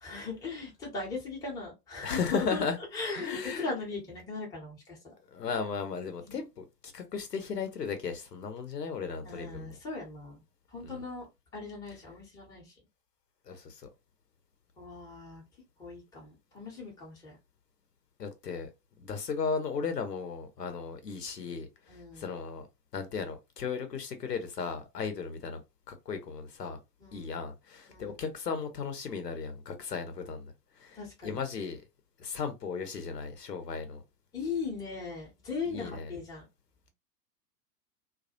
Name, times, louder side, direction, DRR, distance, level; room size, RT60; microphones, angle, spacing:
voice 1, 0.0-2.7 2.9-5.0 6.3-6.4 9.2-10.4 10.7-11.3 11.5-12.7 14.8-15.4 15.8-17.4 21.9-22.2 27.0-27.3 27.9-28.2 30.9-31.4 34.3-36.5, left 4 dB, 10° left, 0.7 m, -38 dB
voice 2, 2.0-2.8 3.2-3.7 5.3-9.7 10.8-11.0 13.5-13.8 18.2-18.7 19.0-21.7 22.2-22.7 22.9-25.6 25.9-26.8 27.1-30.5 30.8-31.8 32.2-34.0 35.7-36.1, left 5 dB, 75° left, 0.8 m, -35 dB
2.2 x 2.1 x 2.7 m
figure-of-eight pair, 100°, 49 cm